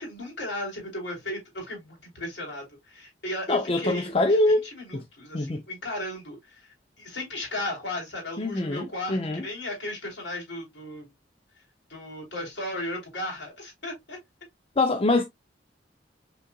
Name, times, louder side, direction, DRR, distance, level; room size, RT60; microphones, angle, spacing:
voice 1, 0.0-6.7 7.0-11.1 11.9-14.2, left 1 dB, 65° left, 3.2 m, -35 dB
voice 2, 3.5-4.6 4.9-5.0 5.3-5.6 8.4-9.5 14.8-15.2, left 2 dB, 30° left, 0.5 m, -24 dB
5.5 x 3.8 x 2.2 m
head